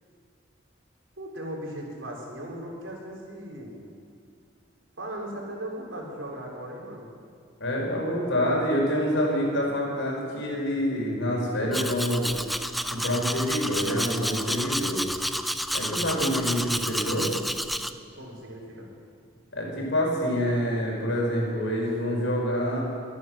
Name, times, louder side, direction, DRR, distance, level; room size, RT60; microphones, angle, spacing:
voice 1, 1.2-3.8 5.0-7.1 18.1-18.9, right 1 dB, 75° right, -2 dB, 3.8 m, -38 dB
voice 2, 7.6-12.3 12.9-15.0 15.7-17.3 19.5-22.8, equal, 70° left, -2 dB, 4.8 m, -26 dB
Domestic sounds home sounds, 11.7-17.9, equal, ahead, 0.4 m, -30 dB
22.5 x 9.5 x 6.2 m, 2.3 s
head